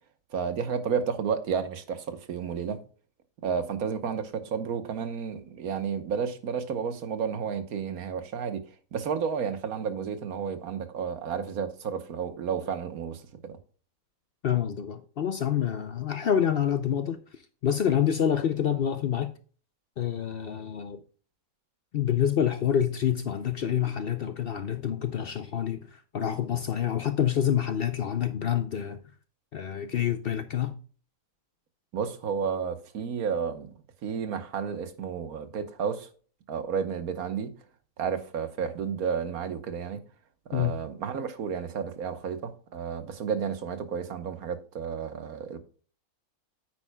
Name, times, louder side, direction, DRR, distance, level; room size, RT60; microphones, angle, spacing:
voice 1, 0.3-2.8 3.4-8.6 8.9-13.6 31.9-33.7 34.0-36.1 36.5-37.5 38.0-40.0 40.5-45.6, right 6 dB, 90° right, 1.5 m, -31 dB
voice 2, 14.4-19.3 20.0-21.0 21.9-29.0 29.5-30.8 40.5-40.8, left 9 dB, 60° left, 0.6 m, -27 dB
9.3 x 8.9 x 2.2 m
omnidirectional pair, 1.5 m